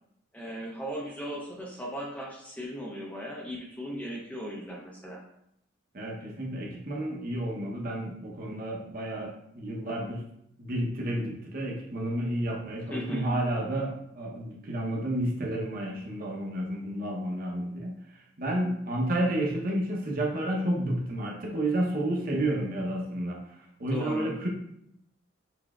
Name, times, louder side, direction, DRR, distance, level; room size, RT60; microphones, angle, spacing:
voice 1, 0.3-5.2 12.9-13.3 23.9-24.3, equal, 5° left, -2 dB, 0.5 m, -37 dB
voice 2, 5.9-10.2 10.6-24.5, right 1 dB, 45° right, -1 dB, 0.8 m, -31 dB
6.1 x 3.3 x 2.3 m, 0.75 s
head